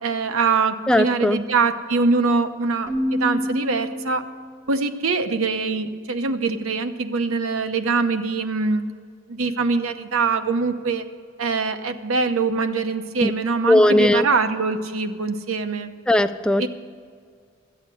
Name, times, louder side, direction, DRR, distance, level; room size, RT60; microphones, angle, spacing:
voice 1, 0.0-4.2 4.7-8.9 9.3-11.0 11.4-15.9 16.6-16.7, right 4 dB, 80° right, 8 dB, 0.9 m, -23 dB
voice 2, 0.9-1.4 13.2-13.3 13.7-14.3 16.1-16.7, left 1 dB, 5° left, 9 dB, 0.3 m, -18 dB
Keyboard (musical), 2.9-4.7, equal, 15° right, 0.7 m, -27 dB
13.5 x 8.0 x 7.8 m, 2.1 s
head